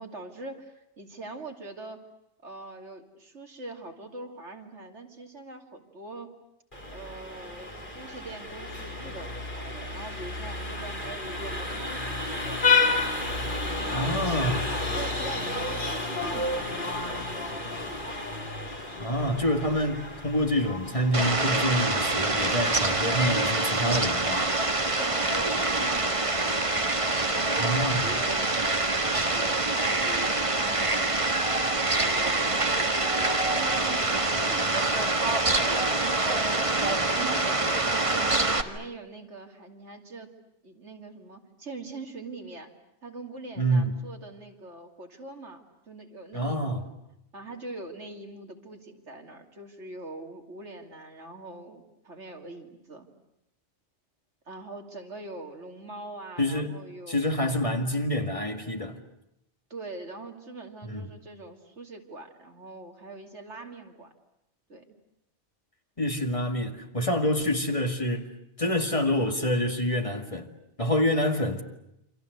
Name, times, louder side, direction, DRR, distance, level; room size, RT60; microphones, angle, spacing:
voice 1, 0.0-2.1 2.4-6.3 6.9-12.6 13.7-18.0 25.0-26.7 27.1-28.7 29.0-31.4 31.9-36.2 36.6-40.3 40.6-42.7 43.0-46.9 47.3-53.1 54.4-57.6 59.7-64.1 64.7-64.9, right 2 dB, 80° right, 3.1 m, -43 dB
Vehicle horn car horn honking, 6.7-23.5, left 3 dB, 45° left, 3.8 m, -31 dB
voice 2, 13.9-14.6 19.0-24.4 27.6-28.1 43.6-43.9 46.3-46.8 56.4-56.7 57.1-59.0 60.9-61.1 66.0-68.3 68.6-70.5 70.8-71.6, equal, 30° left, 2.1 m, -27 dB
Fowl, 21.1-38.6, right 2 dB, 30° right, 1.6 m, -25 dB
28.5 x 26.0 x 8.0 m
omnidirectional pair, 1.2 m